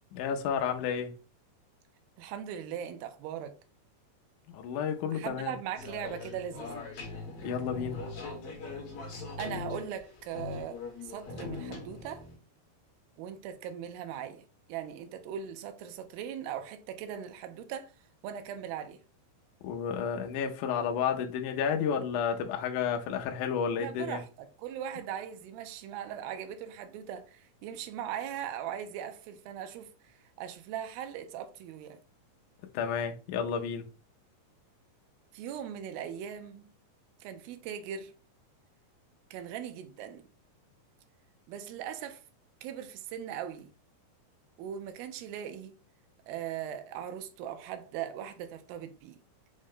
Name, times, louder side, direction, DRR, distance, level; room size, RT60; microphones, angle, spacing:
voice 1, 0.1-1.1 4.5-5.5 7.4-8.0 19.6-24.2 32.7-33.9, left 7 dB, 80° left, 1.9 m, -31 dB
voice 2, 2.2-3.6 5.1-6.8 9.4-12.2 13.2-14.4 14.7-17.9 18.2-19.0 23.8-32.0 35.3-36.7 37.2-38.1 39.3-40.2 41.5-42.2 42.6-43.7 44.6-45.7 46.3-49.2, right 9 dB, 85° right, 2.4 m, -39 dB
sound 1, 5.8-12.3, left 4 dB, 60° left, 1.6 m, -41 dB
6.2 x 2.1 x 3.7 m
omnidirectional pair, 4.2 m